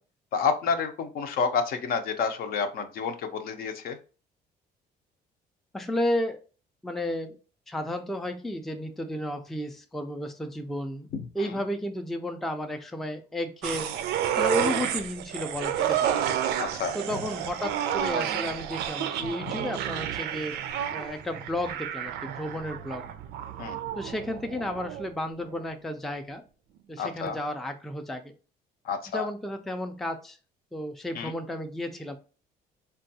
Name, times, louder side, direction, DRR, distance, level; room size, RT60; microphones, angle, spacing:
voice 1, 0.3-4.0 11.4-11.5 16.6-17.2 19.4-19.5 23.6-23.8 27.0-27.4 28.8-29.3 31.1-31.4, left 5 dB, 60° left, 7 dB, 0.5 m, -29 dB
voice 2, 5.7-6.4 6.8-7.4 7.7-11.1 11.3-13.9 14.4-16.2 16.9-20.6 20.9-23.1 24.0-26.4 26.9-28.3 29.1-30.4 30.7-32.2, left 1 dB, ahead, 5 dB, 0.3 m, -32 dB
sound 1, 13.6-25.1 25.5-25.6, right 10 dB, 80° right, 0.4 m, -30 dB
3.4 x 2.3 x 2.6 m, 0.35 s
cardioid pair, 110°, 17 cm